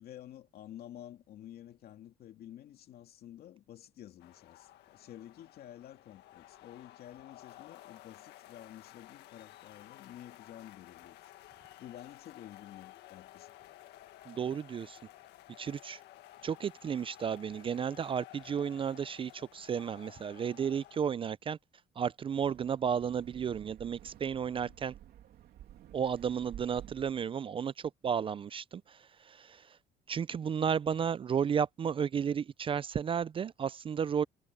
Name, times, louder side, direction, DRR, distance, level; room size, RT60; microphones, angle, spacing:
voice 1, 0.0-11.3 11.8-13.5 24.4-24.8, left 12 dB, 65° left, 2.4 m, -51 dB
sound 1, 4.2-21.0, left 15 dB, 85° left, 1.7 m, -54 dB
voice 2, 14.3-15.0 15.6-16.0 16.4-21.6 22.0-24.9 25.9-29.7 30.1-34.2, right 7 dB, 30° right, 0.4 m, -33 dB
Wind, 22.2-27.3, right 11 dB, 70° right, 2.9 m, -52 dB
cardioid pair, 110°, 17 cm